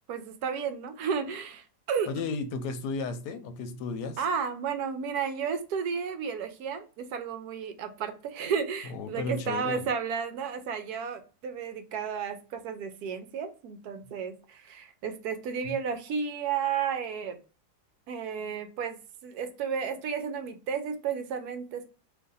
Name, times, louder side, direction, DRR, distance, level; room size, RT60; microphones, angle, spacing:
voice 1, 0.1-2.1 4.2-17.4 18.1-19.0 19.2-21.8, right 6 dB, 75° right, 1.0 m, -32 dB
voice 2, 2.1-4.2 8.9-9.8 15.6-15.8, left 4 dB, 85° left, 1.2 m, -34 dB
2.8 x 2.5 x 3.8 m
omnidirectional pair, 1.7 m